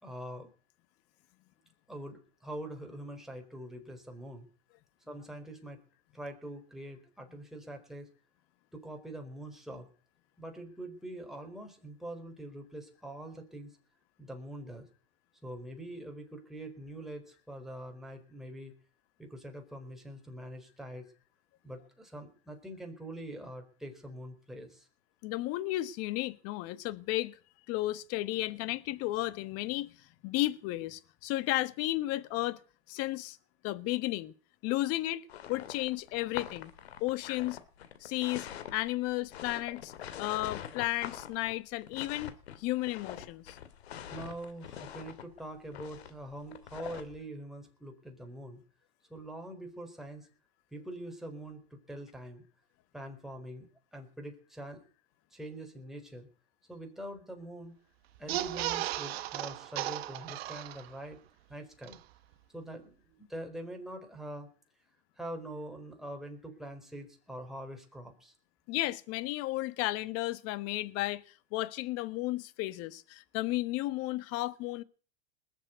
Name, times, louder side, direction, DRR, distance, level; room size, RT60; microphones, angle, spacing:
voice 1, 0.0-0.5 1.9-4.5 5.1-5.8 6.1-8.1 8.7-9.9 10.4-13.7 14.2-14.9 15.4-18.7 19.2-21.1 21.6-24.9 44.1-48.6 49.1-50.3 50.7-52.4 52.9-53.7 53.9-54.8 55.3-56.3 56.7-57.7 58.2-61.2 61.5-62.0 62.5-64.5 65.2-68.3, right 1 dB, ahead, 4.4 m, -44 dB
voice 2, 25.2-27.4 27.7-29.9 30.2-32.6 32.9-33.4 33.6-34.3 34.6-36.7 37.0-37.6 38.0-43.6 68.7-71.2 71.5-74.8, left 17 dB, 50° left, 1.3 m, -33 dB
sound 1, 35.3-47.2, left 10 dB, 85° left, 2.3 m, -44 dB
sound 2, 58.2-61.1 61.5-61.6 61.8-62.0, right 15 dB, 75° right, 1.2 m, -36 dB
20.0 x 7.5 x 9.4 m
supercardioid pair, 120°, 31 cm